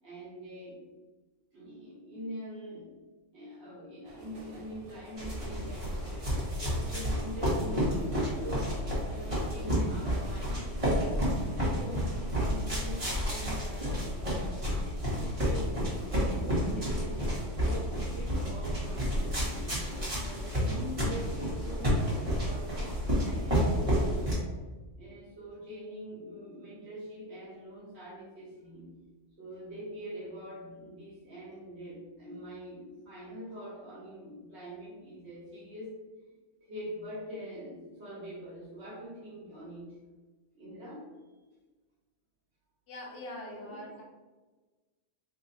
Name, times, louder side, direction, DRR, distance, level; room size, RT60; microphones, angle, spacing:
voice 1, 0.0-0.8 1.5-2.9 3.3-14.1 14.7-17.2 17.5-19.8 20.2-24.4 25.0-28.9 29.4-35.9 36.2-36.3 36.6-40.0 40.5-41.3 43.5-43.9, equal, 65° right, -6 dB, 1.3 m, -44 dB
sound 1, 4.0-14.5, right 1 dB, 45° right, 0.5 m, -50 dB
sound 2, 5.2-24.4, equal, 30° right, 1.4 m, -30 dB
voice 2, 42.9-44.0, left 1 dB, 75° left, -1 dB, 1.2 m, -43 dB
3.2 x 2.5 x 4.0 m, 1.3 s
omnidirectional pair, 1.2 m